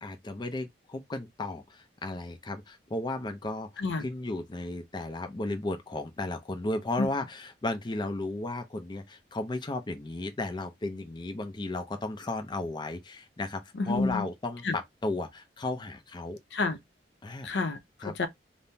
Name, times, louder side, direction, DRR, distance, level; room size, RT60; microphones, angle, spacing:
voice 1, 0.0-3.7 4.0-16.4 17.2-17.5 18.0-18.1, left 2 dB, 25° left, 0.5 m, -34 dB
voice 2, 13.7-14.3 14.6-14.7 16.5-16.8 17.4-18.3, left 3 dB, 75° left, 0.5 m, -29 dB
3.5 x 2.0 x 2.6 m
head